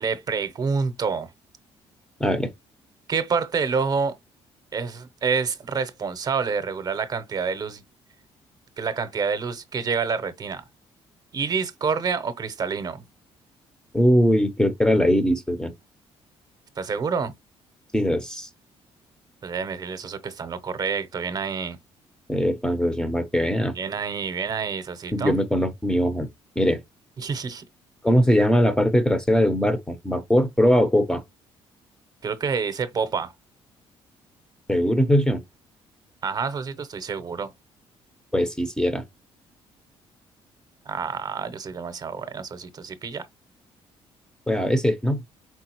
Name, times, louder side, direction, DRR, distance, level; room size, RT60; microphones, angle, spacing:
voice 1, 0.0-1.3 3.1-4.2 4.7-7.8 8.8-10.6 11.3-13.0 16.8-17.3 19.4-21.8 23.7-25.4 27.2-27.6 32.2-33.3 36.2-37.5 40.9-43.3, right 5 dB, 40° right, 0.7 m, -28 dB
voice 2, 2.2-2.5 13.9-15.7 17.9-18.5 22.3-23.7 25.1-26.3 26.6-26.8 28.0-31.2 34.7-35.4 38.3-39.0 44.5-45.2, equal, 5° left, 0.6 m, -21 dB
4.6 x 3.7 x 2.9 m
cardioid pair, 120°, 11 cm